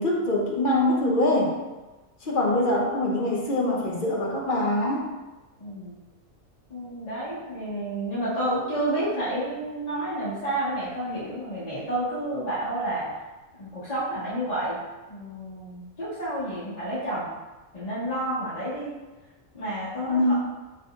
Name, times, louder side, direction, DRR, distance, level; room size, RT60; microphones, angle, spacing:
voice 1, 0.0-1.6 2.2-5.1 20.1-20.3, left 1 dB, 50° left, -2 dB, 0.7 m, -24 dB
voice 2, 5.6-5.9 6.7-13.1 13.6-14.8 15.1-17.3 17.7-18.9 19.5-20.3, right 1 dB, 30° left, -10 dB, 1.4 m, -30 dB
5.2 x 3.1 x 2.4 m, 1.2 s
omnidirectional pair, 1.4 m